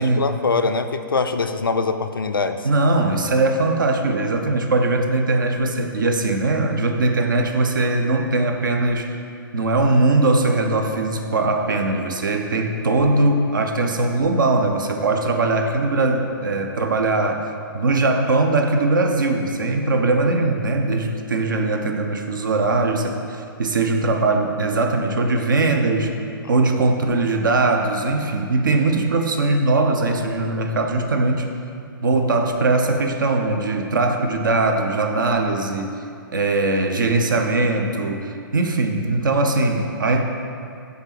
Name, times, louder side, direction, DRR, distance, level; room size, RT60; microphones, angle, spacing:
voice 1, 0.0-2.7, left 4 dB, 75° left, 8 dB, 0.4 m, -23 dB
voice 2, 2.6-9.1 9.5-17.5 17.7-26.2 26.5-31.5 32.0-35.9 36.3-40.2, right 2 dB, 65° right, 4 dB, 0.6 m, -20 dB
5.3 x 3.9 x 6.0 m, 2.4 s
figure-of-eight pair, 120°, 12 cm